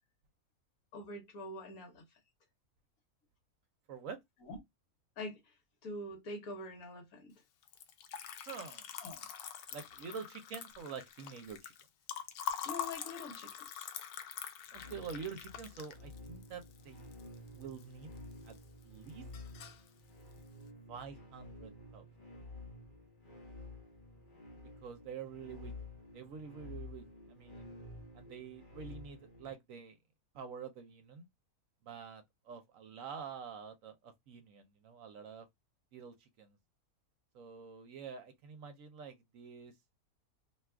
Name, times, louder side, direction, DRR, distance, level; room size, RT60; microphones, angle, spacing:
voice 1, 0.9-2.0 4.4-4.6 5.2-5.5 5.8-7.3 9.0-9.3 12.6-13.5 13.7-13.8, left 1 dB, 70° left, 1.4 m, -44 dB
Liquid, 7.6-17.8 18.2-18.8 19.1-19.9, left 9 dB, 85° left, 1.1 m, -44 dB
voice 2, 8.5-8.9 9.7-11.7 14.7-17.0 17.5-18.1 18.4-18.5 18.8-19.3 20.9-22.1 24.8-25.7 26.1-27.7 28.1-30.0 30.3-31.3 31.8-35.5 35.9-36.6 37.3-39.7, right 6 dB, 70° right, 1.0 m, -47 dB
sound 1, 14.7-29.5, left 2 dB, 40° left, 0.9 m, -51 dB
2.9 x 2.3 x 3.3 m
omnidirectional pair, 1.6 m